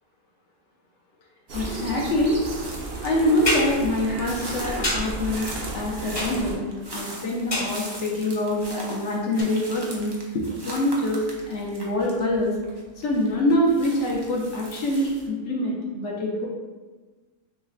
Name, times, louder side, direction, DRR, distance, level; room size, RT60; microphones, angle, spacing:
voice 1, 1.5-2.4 3.0-5.4 5.7-6.6 6.9-12.6 13.0-16.5, left 1 dB, 65° left, -2 dB, 0.9 m, -25 dB
sound 1, 1.5-15.3, right 1 dB, 40° right, 0.3 m, -41 dB
sound 2, 1.5-6.6, right 2 dB, 60° right, 0.7 m, -34 dB
sound 3, 3.5-3.8 4.8-5.2 6.2-6.6 7.5-8.0 9.4-9.5, left 1 dB, 30° left, 0.7 m, -27 dB
6.2 x 2.1 x 2.5 m, 1.3 s
omnidirectional pair, 1.4 m